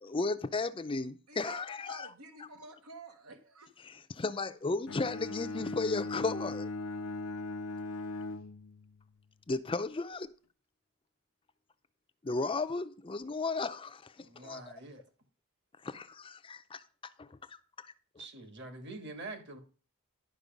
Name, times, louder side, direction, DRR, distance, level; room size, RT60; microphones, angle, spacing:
voice 1, 0.0-2.1 3.8-6.7 9.5-10.3 12.2-14.6 15.8-16.9 17.2-17.9, left 3 dB, 25° left, 0.4 m, -35 dB
voice 2, 1.3-3.7, right 3 dB, 85° right, 1.2 m, -50 dB
Bowed string instrument, 4.9-9.1, left 2 dB, 85° left, 0.6 m, -39 dB
voice 3, 14.2-15.0 18.2-19.6, right 2 dB, 50° right, 1.5 m, -45 dB
11.0 x 5.4 x 5.2 m
head